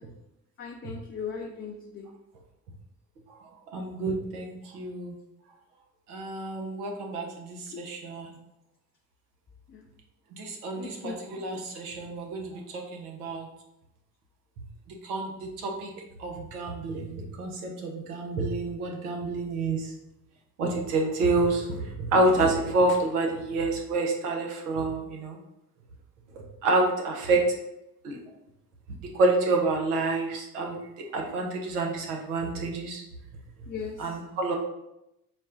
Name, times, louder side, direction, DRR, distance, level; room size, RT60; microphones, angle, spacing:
voice 1, 0.6-2.0 10.8-11.2 33.7-33.9, left 6 dB, 30° left, 1 dB, 0.5 m, -37 dB
voice 2, 3.7-5.1 6.1-8.3 10.3-13.5 15.0-15.9 16.2-19.9 20.6-25.4 26.6-27.4 28.0-28.2 29.1-30.8 31.1-33.0 34.0-34.6, right 2 dB, 85° right, 1 dB, 0.8 m, -28 dB
4.1 x 2.2 x 3.6 m, 0.86 s
hypercardioid pair, 55°, 44 cm